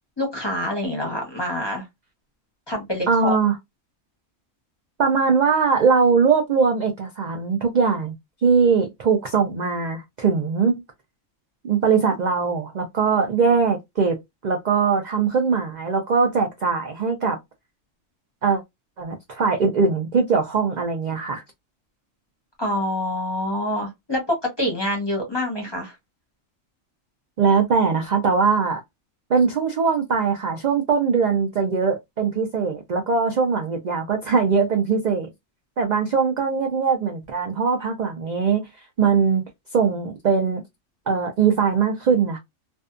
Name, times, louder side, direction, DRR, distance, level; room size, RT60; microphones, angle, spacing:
voice 1, 0.2-1.8 2.7-3.4 22.6-25.9, left 1 dB, 25° left, 0.7 m, -26 dB
voice 2, 3.1-3.5 5.0-8.1 8.4-10.8 11.6-17.4 18.4-18.6 19.0-21.4 27.4-28.8 29.3-35.3 35.8-38.7 39.0-39.4 39.7-40.6 41.1-42.4, right 5 dB, 65° right, 0.4 m, -21 dB
2.6 x 2.3 x 2.4 m
omnidirectional pair, 1.4 m